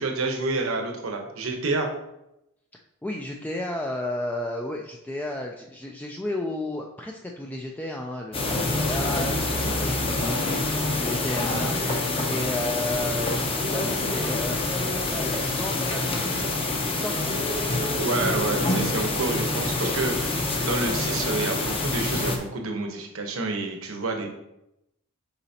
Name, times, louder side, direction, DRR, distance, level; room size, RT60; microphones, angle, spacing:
voice 1, 0.0-1.9 10.1-10.4 11.4-11.7 18.0-24.3, right 3 dB, 70° right, 3 dB, 1.0 m, -29 dB
voice 2, 3.0-14.6 15.0-17.3, left 1 dB, 10° left, 0 dB, 0.4 m, -33 dB
sound 1, 8.3-22.4, left 2 dB, 25° left, 0.8 m, -26 dB
6.9 x 5.1 x 2.8 m, 0.86 s
head